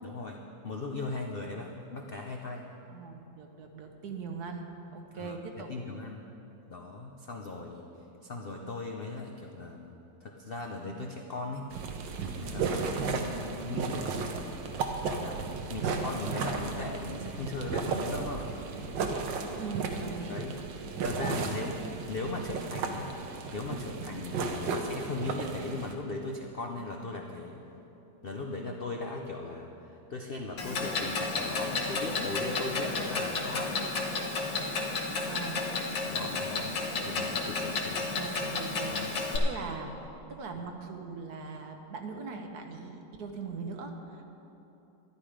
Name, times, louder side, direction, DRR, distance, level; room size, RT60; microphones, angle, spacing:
voice 1, 0.0-2.7 5.1-6.2 6.6-7.8 8.2-9.9 10.2-11.8 12.4-14.5 15.0-18.5 20.3-20.6 21.0-23.2 23.5-27.6 28.2-33.8 36.1-36.7 37.0-38.1 38.9-39.2, left 3 dB, 60° left, 1 dB, 0.6 m, -38 dB
voice 2, 2.9-5.7 19.6-20.4 21.1-21.6 35.2-35.6 38.1-39.9 40.3-44.2, right 4 dB, 65° right, 4 dB, 1.4 m, -40 dB
sound 1, 11.7-25.9, right 4 dB, 80° right, 1.6 m, -34 dB
Clock, 30.6-39.4, left 3 dB, 80° left, 2.0 m, -32 dB
12.5 x 11.5 x 5.0 m, 3.0 s
omnidirectional pair, 2.0 m